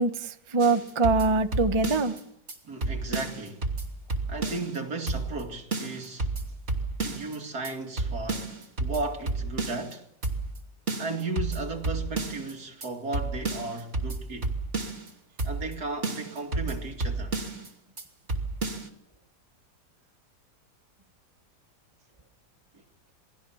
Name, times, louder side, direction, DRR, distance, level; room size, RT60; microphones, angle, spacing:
voice 1, 0.0-2.1, right 3 dB, 20° right, 1.0 m, -24 dB
sound 1, 0.6-2.2 2.5-2.6 2.8-4.8 5.1-5.4 5.7-7.4 7.6-7.7 8.0-9.9 10.2-10.6 10.9-12.5 12.8-12.9 13.1-15.1 15.4-15.8 16.0-17.7 18.0-18.1 18.3-18.9, right 3 dB, 45° right, 3.0 m, -31 dB
voice 2, 2.6-3.7 4.3-6.3 7.0-10.0 11.0-14.5 15.4-17.4, right 3 dB, 65° right, 2.9 m, -35 dB
28.0 x 20.0 x 7.2 m
omnidirectional pair, 1.8 m